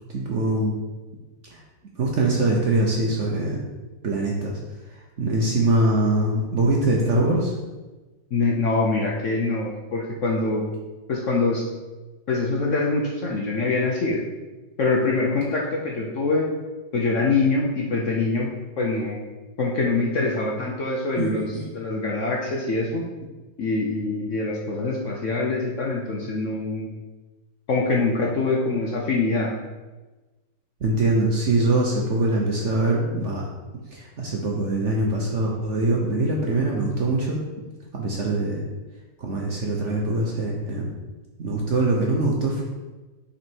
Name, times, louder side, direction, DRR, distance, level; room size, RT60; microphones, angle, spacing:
voice 1, 0.1-0.8 1.5-1.6 2.0-3.6 4.0-4.6 4.9-7.5 13.3-13.4 21.2-21.7 30.8-33.5 33.9-37.4 37.9-38.6 39.2-40.9 41.4-42.6, right 2 dB, 55° right, -1 dB, 0.8 m, -23 dB
voice 2, 8.3-10.6 11.1-11.6 12.3-14.2 14.8-16.5 16.9-18.5 18.8-19.2 19.6-23.0 23.6-26.9 27.7-29.5, left 3 dB, 60° left, -2 dB, 0.8 m, -24 dB
6.1 x 4.1 x 4.5 m, 1.2 s
omnidirectional pair, 2.1 m